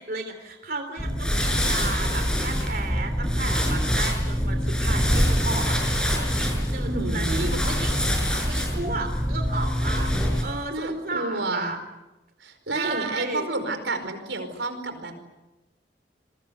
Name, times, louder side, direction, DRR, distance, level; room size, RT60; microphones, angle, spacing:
voice 1, 0.0-11.8 12.7-13.5, right 3 dB, 55° right, 7 dB, 3.3 m, -34 dB
sound 1, 1.0-10.4, equal, 5° left, 6.4 m, -24 dB
voice 2, 6.8-7.6 10.7-11.7 12.4-15.2, right 2 dB, 90° right, 9 dB, 4.9 m, -30 dB
27.5 x 23.0 x 8.1 m, 1.0 s
head